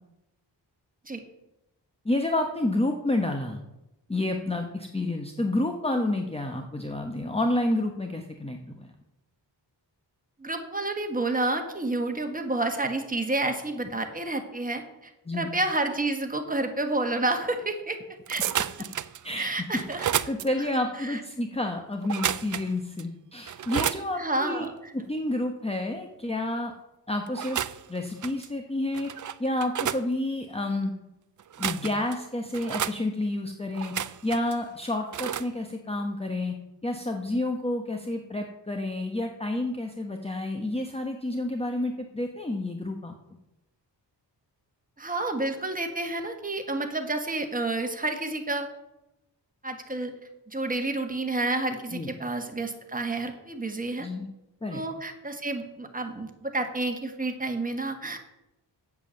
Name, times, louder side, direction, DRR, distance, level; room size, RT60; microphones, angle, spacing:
voice 1, 2.0-3.6 4.1-8.9 15.3-15.5 19.2-24.7 24.9-26.7 27.1-27.6 27.9-29.1 29.4-30.9 31.6-33.9 34.2-36.5 36.8-43.1 51.9-52.1 54.0-54.3 54.6-54.8, left 1 dB, 15° left, 4 dB, 1.0 m, -29 dB
voice 2, 10.4-18.0 18.3-18.7 19.4-20.1 20.7-21.2 24.2-24.9 45.0-48.7 49.6-50.1 50.5-54.1 54.7-58.2, right 2 dB, 20° right, 5 dB, 1.6 m, -30 dB
sound 1, 17.5-17.7 18.0-21.6, right 12 dB, 85° right, 0.6 m, -38 dB
sound 2, 18.3-19.3 19.7-20.3 22.0-22.7 23.0-23.1 23.5-24.0 27.3-27.9 28.2-28.5 28.9-30.0 31.4-32.1 32.5-33.0 33.7-34.5 35.1-35.5, right 9 dB, 45° right, 0.5 m, -31 dB
8.2 x 7.3 x 7.7 m, 0.92 s
wide cardioid pair, 95°, 44 cm